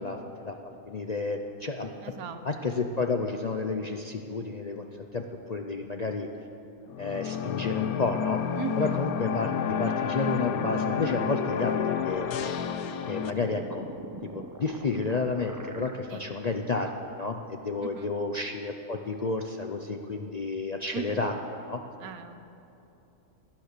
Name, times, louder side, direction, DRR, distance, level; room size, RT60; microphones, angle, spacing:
voice 1, 0.0-1.9 2.4-4.9 5.1-5.2 5.5-6.3 7.0-8.4 8.8-12.3 13.1-13.9 14.2-16.9 17.2-21.4 21.6-21.8, left 3 dB, 50° left, 4 dB, 0.5 m, -31 dB
voice 2, 2.0-2.4 2.7-2.8 8.5-8.9 16.1-16.2 17.8-18.1 20.9-21.2 22.0-22.4, right 7 dB, 90° right, 9 dB, 1.3 m, -38 dB
sound 1, 6.9-13.3, left 8 dB, 85° left, 1.2 m, -30 dB
sound 2, 9.7-16.0, right 2 dB, 20° right, 0.6 m, -43 dB
17.0 x 10.5 x 6.6 m, 2.9 s
omnidirectional pair, 1.5 m